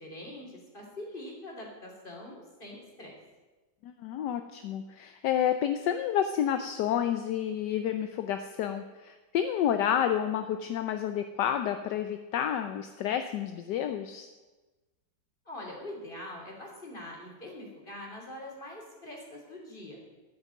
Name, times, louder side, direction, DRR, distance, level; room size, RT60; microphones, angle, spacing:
voice 1, 0.0-3.2 15.4-20.0, left 1 dB, 30° left, -1 dB, 3.2 m, -43 dB
voice 2, 3.8-14.3, left 9 dB, 75° left, 9 dB, 1.2 m, -30 dB
13.0 x 6.1 x 9.3 m, 1.2 s
omnidirectional pair, 1.9 m